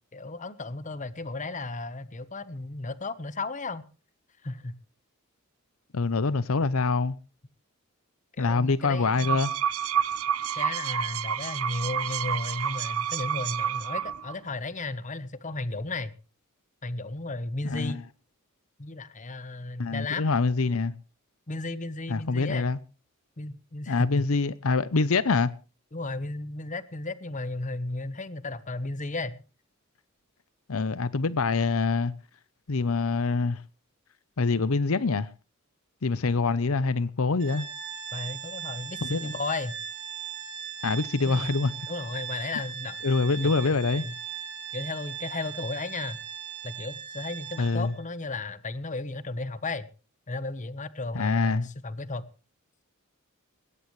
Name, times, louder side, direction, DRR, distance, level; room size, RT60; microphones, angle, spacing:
voice 1, 0.1-3.8 4.4-4.8 8.3-9.4 10.6-16.1 16.8-18.0 18.8-20.2 21.5-22.7 23.4-24.3 25.9-29.4 38.1-39.8 41.2-41.5 41.9-43.0 43.4-43.8 44.0-44.1 44.7-46.2 46.6-49.9 50.3-52.3, left 2 dB, 35° left, 1.1 m, -34 dB
voice 2, 5.9-7.2 8.4-9.5 17.6-18.0 19.8-20.9 22.1-22.8 23.9-25.5 30.7-32.1 32.7-33.6 34.4-35.3 36.0-37.7 39.0-39.3 40.8-41.7 43.0-44.0 47.6-47.9 51.1-51.7, left 4 dB, 75° left, 0.7 m, -25 dB
sound 1, 9.0-14.3, right 8 dB, 85° right, 0.8 m, -29 dB
Organ, 37.4-48.0, right 8 dB, 55° right, 6.1 m, -39 dB
19.5 x 17.0 x 3.2 m
head